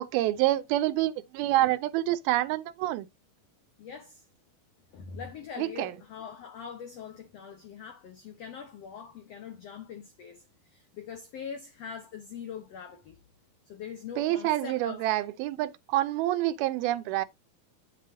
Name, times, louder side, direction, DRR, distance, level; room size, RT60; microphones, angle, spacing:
voice 1, 0.0-3.1 5.6-5.9 14.2-17.3, right 15 dB, 90° right, 2.5 m, -27 dB
voice 2, 3.8-4.3 4.9-13.2 13.7-15.1, left 7 dB, 90° left, 1.4 m, -43 dB
8.9 x 7.4 x 2.7 m
omnidirectional pair, 4.3 m